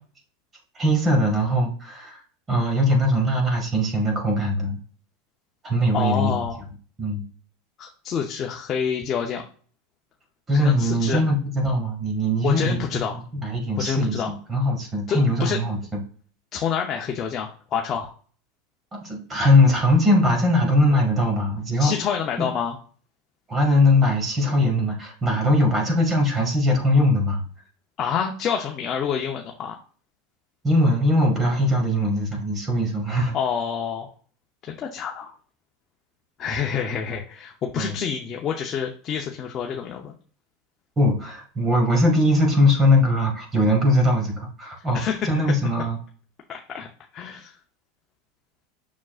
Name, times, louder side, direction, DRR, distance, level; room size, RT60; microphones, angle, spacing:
voice 1, 0.8-2.2 2.5-4.8 5.6-6.3 7.0-7.2 10.5-12.8 13.3-16.0 18.9-21.9 23.5-27.4 30.6-33.3 37.8-38.0 41.0-46.0, left 1 dB, 20° right, 2 dB, 2.0 m, -21 dB
voice 2, 5.9-6.6 7.8-9.4 10.6-11.2 12.4-13.2 13.8-14.3 15.1-15.6 16.5-18.1 21.7-22.8 28.0-29.8 33.3-34.1 34.6-35.3 36.4-40.1 44.9-45.5 46.5-46.9 47.1-47.5, left 7 dB, 30° left, 1 dB, 0.7 m, -27 dB
7.1 x 6.2 x 2.5 m, 0.43 s
supercardioid pair, 135°, 0 cm